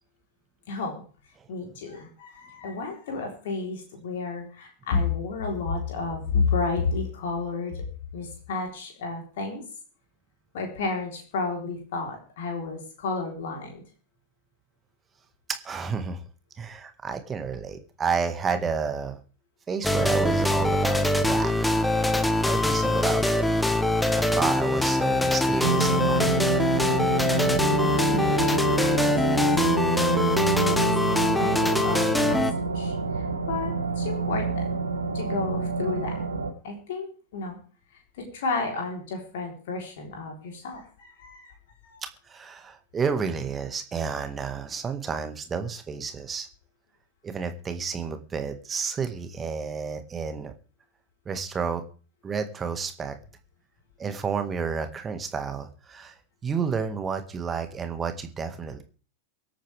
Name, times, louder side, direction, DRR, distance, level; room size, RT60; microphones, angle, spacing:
voice 1, 0.7-1.0 1.5-7.8 8.1-9.6 10.5-13.8 20.6-20.8 27.3-29.5 30.6-30.8 31.2-32.4 32.7-34.8 35.1-36.2 36.6-37.1 37.3-37.6 37.9-41.5 41.8-42.0, left 4 dB, 55° left, 1 dB, 3.8 m, -32 dB
voice 2, 15.6-16.2 16.6-19.2 19.7-21.0 21.3-21.7 22.4-23.5 24.1-26.4 42.3-46.5 47.2-50.5 51.3-51.8 52.2-53.2 54.0-56.1 56.4-58.8, right 5 dB, 20° right, 8 dB, 1.8 m, -31 dB
sound 1, 19.8-32.5, left 1 dB, 5° left, 1.2 m, -23 dB
sound 2, 25.6-36.5, right 4 dB, 75° right, 1.8 m, -27 dB
24.0 x 8.7 x 3.5 m, 0.39 s
figure-of-eight pair, 90°, 0 cm